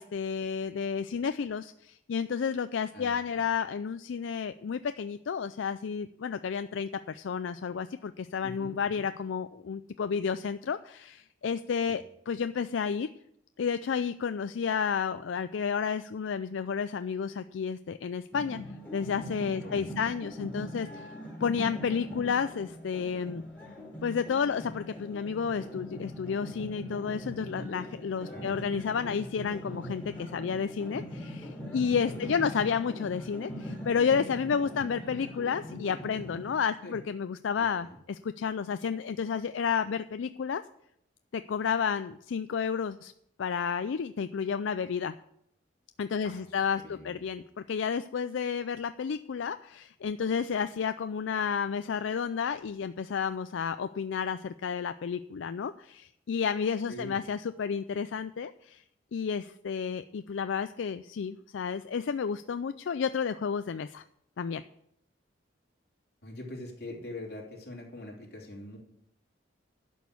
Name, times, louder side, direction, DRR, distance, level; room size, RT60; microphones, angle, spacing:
voice 1, 0.0-13.1 13.6-18.6 18.9-21.1 21.4-23.4 24.0-40.6 41.3-43.1 43.4-45.1 46.0-58.8 59.1-64.0 64.4-64.6, left 6 dB, 80° left, 11 dB, 0.4 m, -31 dB
voice 2, 2.9-3.4 8.4-9.0 11.9-12.0 19.6-20.2 28.3-28.6 32.0-32.4 34.7-34.8 36.8-37.0 37.6-38.0 46.2-46.4 46.7-47.1 56.9-57.2 66.2-68.8, left 1 dB, 55° left, -2 dB, 3.3 m, -44 dB
sound 1, 18.3-36.5, left 1 dB, 10° left, 4.1 m, -41 dB
11.5 x 6.3 x 8.4 m, 0.74 s
head